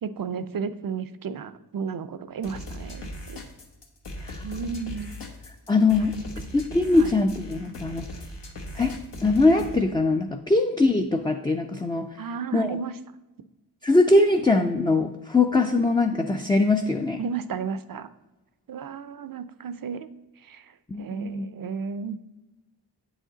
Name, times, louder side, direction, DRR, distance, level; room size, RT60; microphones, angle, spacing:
voice 1, 0.0-3.4 4.4-5.1 6.9-7.1 12.2-13.0 17.2-18.1 18.7-20.1 20.4-22.2, right 6 dB, 55° right, 13 dB, 0.5 m, -33 dB
sound 1, 2.4-9.8, left 1 dB, 80° left, 1.1 m, -38 dB
voice 2, 5.7-6.1 6.5-8.1 8.8-8.9 9.2-12.1 12.5-12.7 13.8-17.2 20.9-21.5, left 2 dB, 10° left, 4 dB, 0.3 m, -22 dB
8.3 x 5.0 x 3.8 m, 1.1 s
wide cardioid pair, 75°, 42 cm